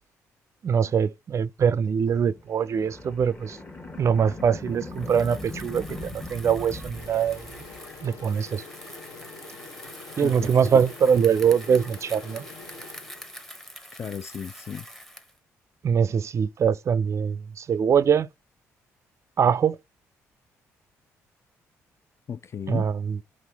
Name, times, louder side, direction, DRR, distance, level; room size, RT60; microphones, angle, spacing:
voice 1, 0.6-3.6 4.0-7.5 8.0-8.6 10.2-12.5 15.8-18.3 19.4-19.8 22.7-23.2, right 7 dB, 45° right, 0.4 m, -23 dB
sound 1, 2.1-8.0, left 2 dB, 25° left, 1.2 m, -40 dB
Bicycle, 4.9-15.4, equal, 5° left, 0.8 m, -45 dB
sound 2, 6.9-13.6, left 3 dB, 75° left, 1.1 m, -45 dB
voice 2, 10.2-10.8 14.0-14.8 22.3-22.9, left 7 dB, 45° left, 0.4 m, -35 dB
4.2 x 3.1 x 3.3 m
supercardioid pair, 60°, 7 cm